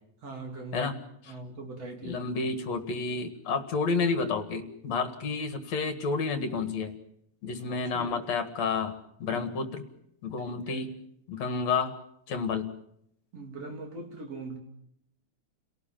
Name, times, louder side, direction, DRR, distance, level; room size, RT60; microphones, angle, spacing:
voice 1, 0.2-0.9 1.3-2.2 7.7-8.3 9.3-9.5 10.6-10.9 13.3-14.6, right 3 dB, 50° right, 2 dB, 4.4 m, -41 dB
voice 2, 2.0-6.9 7.4-8.9 9.2-9.8 10.2-10.9 11.3-11.9 12.3-12.7, left 4 dB, 60° left, 8 dB, 2.9 m, -30 dB
30.0 x 18.0 x 7.5 m, 0.74 s
omnidirectional pair, 3.5 m